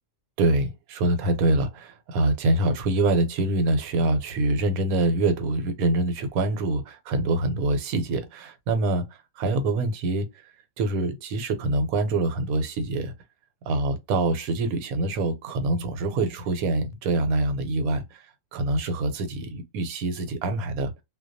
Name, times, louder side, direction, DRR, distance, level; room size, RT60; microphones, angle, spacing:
voice 1, 0.4-13.1 13.7-20.9, right 2 dB, 80° right, 1.0 m, -25 dB
2.2 x 2.1 x 2.5 m
omnidirectional pair, 1.5 m